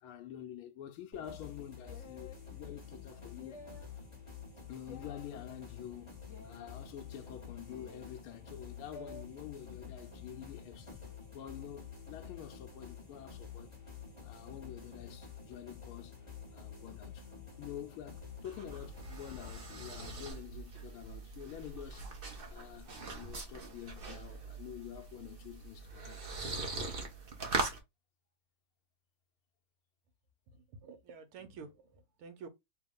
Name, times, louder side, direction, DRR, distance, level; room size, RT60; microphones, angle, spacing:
voice 1, 0.0-3.8 4.7-6.1 6.4-11.0 11.3-13.7 14.2-16.2 16.5-17.3 17.6-22.1 22.5-26.3, left 10 dB, 85° left, 1.5 m, -48 dB
sound 1, 1.1-20.3, left 6 dB, 15° left, 1.5 m, -49 dB
sound 2, 1.9-2.4 3.3-4.0 4.9-5.3 6.3-6.8 7.7-8.2 8.9-9.3, left 3 dB, 65° left, 0.7 m, -52 dB
sound 3, 18.2-27.8, right 3 dB, 40° right, 0.8 m, -41 dB
voice 2, 30.5-32.5, right 5 dB, 80° right, 1.7 m, -50 dB
3.6 x 3.0 x 3.6 m
omnidirectional pair, 2.3 m